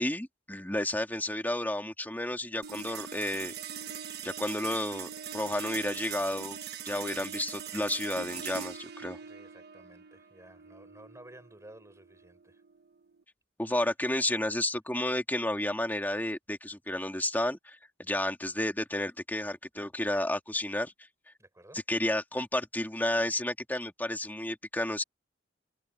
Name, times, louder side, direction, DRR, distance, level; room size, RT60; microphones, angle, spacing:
voice 1, 0.0-3.5 4.2-6.6 6.8-9.2 13.6-20.9 21.9-25.0, left 1 dB, 10° left, 2.5 m, -31 dB
sound 1, 2.6-13.2, right 8 dB, 60° right, 1.2 m, -42 dB
voice 2, 9.2-12.6 21.4-21.8, right 1 dB, 15° right, 6.7 m, -54 dB
head